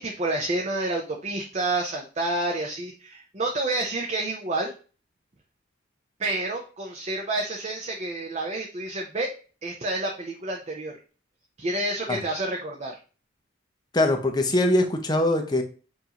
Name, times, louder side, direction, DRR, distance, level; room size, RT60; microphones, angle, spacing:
voice 1, 0.0-4.7 6.2-9.3 9.6-11.0 11.6-13.0, right 2 dB, 35° right, 1 dB, 0.6 m, -29 dB
voice 2, 13.9-15.6, left 1 dB, 20° left, 4 dB, 0.6 m, -22 dB
7.0 x 2.6 x 2.9 m, 0.37 s
head